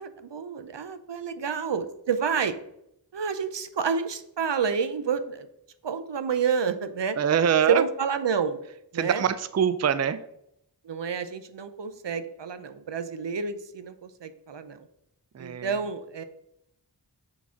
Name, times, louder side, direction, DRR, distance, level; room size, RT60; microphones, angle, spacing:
voice 1, 0.0-2.6 3.1-5.5 5.8-7.2 7.7-8.6 8.9-9.2 10.8-14.9 15.4-16.2, right 6 dB, 80° right, 11 dB, 0.7 m, -29 dB
voice 2, 7.1-7.8 8.9-10.2 15.3-15.8, right 8 dB, 40° right, 13 dB, 0.4 m, -24 dB
6.1 x 3.9 x 5.7 m, 0.77 s
wide cardioid pair, 45°, 42 cm